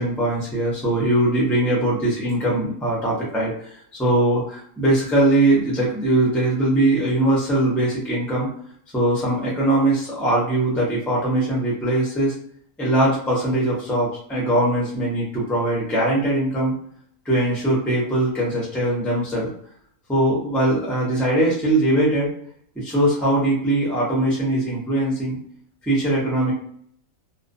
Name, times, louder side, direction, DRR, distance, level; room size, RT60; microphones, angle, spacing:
voice 1, 0.0-8.5 8.9-12.3 12.8-16.7 17.2-19.5 20.1-22.3 22.8-25.4 25.8-26.5, right 1 dB, ahead, -5 dB, 0.4 m, -21 dB
2.4 x 2.1 x 2.5 m, 0.63 s
omnidirectional pair, 1.5 m